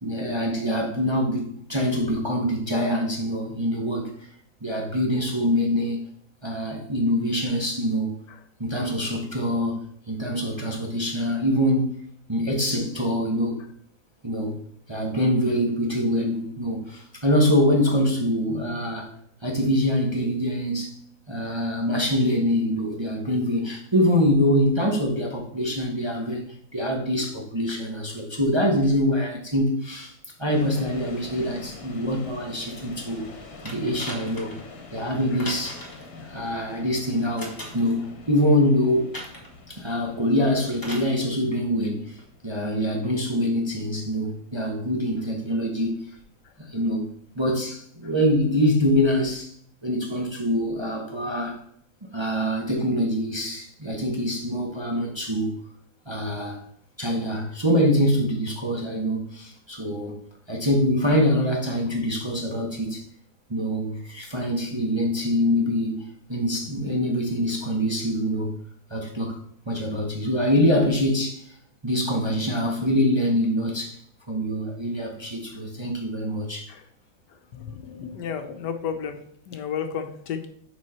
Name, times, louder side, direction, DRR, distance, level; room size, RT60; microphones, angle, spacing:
voice 1, 0.0-4.1 4.6-6.0 6.4-8.1 8.6-9.8 10.1-11.9 12.3-13.6 14.2-14.6 14.9-19.2 19.4-20.9 21.3-26.4 26.7-30.1 30.4-33.3 33.6-34.6 34.9-35.8 36.1-39.1 39.7-42.2 42.4-46.1 46.6-47.1 47.3-49.5 49.8-51.6 52.0-55.6 56.1-56.6 57.0-60.2 60.5-63.0 63.5-68.6 68.9-69.4 69.7-71.5 71.8-74.0 74.3-76.7, equal, 20° right, 0.8 m, -24 dB
sound 1, 30.5-47.5, left 3 dB, 60° left, 1.6 m, -46 dB
sound 2, 33.7-34.6 35.4-36.1 37.4-38.0 39.1-39.5 40.8-41.1 42.2-42.3, equal, 10° left, 1.6 m, -38 dB
voice 2, 77.5-79.2 79.5-80.5, left 7 dB, 80° left, 1.4 m, -32 dB
6.2 x 5.1 x 4.3 m
omnidirectional pair, 1.8 m